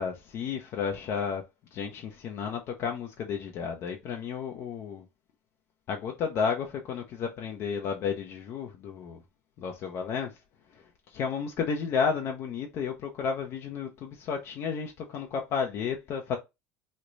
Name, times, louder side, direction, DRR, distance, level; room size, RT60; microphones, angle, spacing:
voice 1, 0.0-1.4 1.7-5.0 5.9-9.2 9.6-10.3 11.1-16.4, left 6 dB, 50° left, 0.6 m, -32 dB
3.1 x 2.1 x 3.8 m
supercardioid pair, 105°, 6 cm